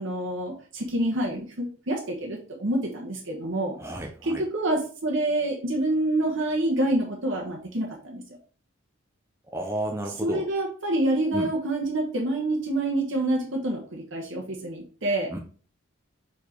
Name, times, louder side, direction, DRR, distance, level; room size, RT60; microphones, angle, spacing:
voice 1, 0.0-3.7 4.2-8.2 10.2-15.3, right 1 dB, 60° right, -1 dB, 1.2 m, -27 dB
voice 2, 3.8-4.4 9.5-10.5 11.3-11.5 15.3-15.4, right 1 dB, 10° right, 2 dB, 0.6 m, -32 dB
4.9 x 4.4 x 4.5 m, 0.40 s
head